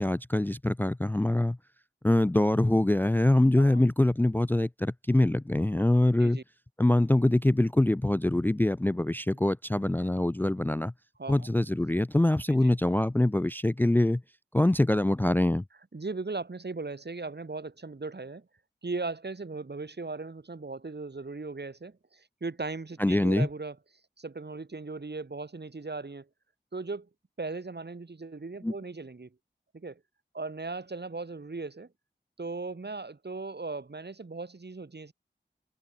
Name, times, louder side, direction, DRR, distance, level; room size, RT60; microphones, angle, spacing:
voice 1, 0.0-1.6 2.0-6.4 6.8-10.9 11.3-14.2 14.5-15.6 23.0-23.5 28.6-28.7, left 1 dB, 10° left, 0.3 m, -24 dB
voice 2, 15.9-18.5 18.8-23.8 24.2-26.3 26.7-27.1 27.4-29.3 29.7-30.0 30.3-31.9 32.4-35.1, right 3 dB, 60° right, 1.9 m, -38 dB
wide cardioid pair, 45°, 19 cm